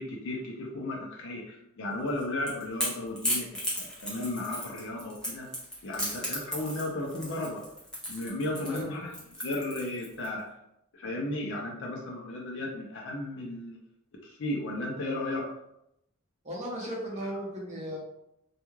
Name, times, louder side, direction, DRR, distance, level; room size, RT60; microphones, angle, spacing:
voice 1, 0.0-5.5 5.8-7.6 8.1-9.1 9.4-10.5 10.9-13.8 14.2-15.5, left 1 dB, 60° left, -1 dB, 0.5 m, -34 dB
Crackle / Crack, 2.1-10.3, equal, 5° left, 0.6 m, -35 dB
voice 2, 16.4-18.0, equal, 30° right, -4 dB, 0.7 m, -36 dB
2.3 x 2.2 x 3.0 m, 0.81 s
head